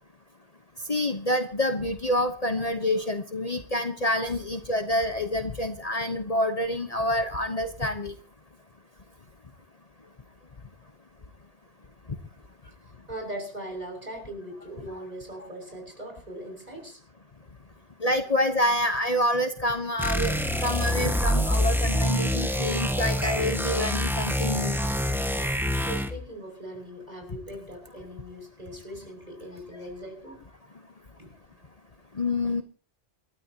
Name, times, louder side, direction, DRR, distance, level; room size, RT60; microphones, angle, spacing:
voice 1, 0.9-8.1 18.0-20.3 20.6-24.8 32.2-32.6, left 1 dB, 35° left, 7 dB, 1.1 m, -27 dB
voice 2, 13.1-17.0 25.8-30.4 31.2-31.3 32.4-32.5, right 1 dB, 40° right, 2 dB, 6.3 m, -40 dB
sound 1, 20.0-26.2, equal, ahead, 1.4 m, -26 dB
27.5 x 13.0 x 2.9 m, 0.36 s
omnidirectional pair, 1.1 m